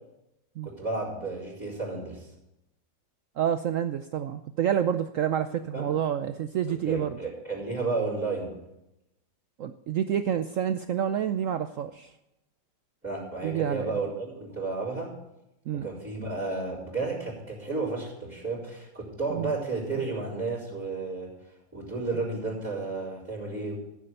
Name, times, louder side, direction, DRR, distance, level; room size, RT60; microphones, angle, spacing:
voice 1, 0.6-2.3 5.7-5.9 6.7-8.5 13.0-15.1 15.7-21.3 21.7-23.7, right 3 dB, 5° right, -11 dB, 4.2 m, -32 dB
voice 2, 3.4-7.2 9.6-12.1 13.4-13.9 15.7-15.9 19.3-19.5, right 9 dB, 85° right, 10 dB, 0.7 m, -28 dB
14.5 x 7.6 x 6.7 m, 0.86 s
omnidirectional pair, 2.0 m